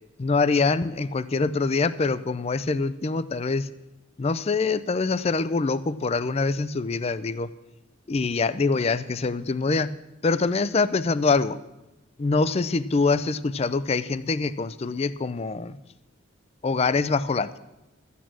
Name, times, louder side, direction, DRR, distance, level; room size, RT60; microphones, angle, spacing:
voice 1, 0.2-3.7 4.2-7.5 8.1-9.9 10.2-11.6 12.2-15.8 16.6-17.6, left 4 dB, 30° left, 16 dB, 0.4 m, -24 dB
14.0 x 8.3 x 6.1 m, 0.97 s
head